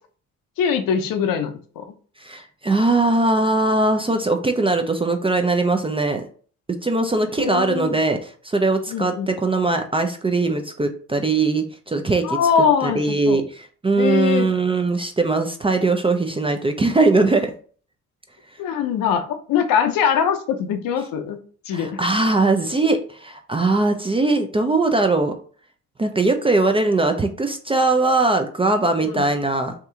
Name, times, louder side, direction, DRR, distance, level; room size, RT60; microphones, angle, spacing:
voice 1, 0.6-1.8 7.3-8.0 8.9-9.3 12.2-13.4 14.0-14.5 18.6-21.4 21.7-22.0 29.0-29.3, left 7 dB, 60° left, 8 dB, 0.6 m, -22 dB
voice 2, 2.2-6.2 6.8-12.4 12.8-17.5 21.7-25.3 26.0-29.7, right 3 dB, 15° right, 5 dB, 0.4 m, -20 dB
2.8 x 2.3 x 3.6 m, 0.43 s
hypercardioid pair, 50°, 38 cm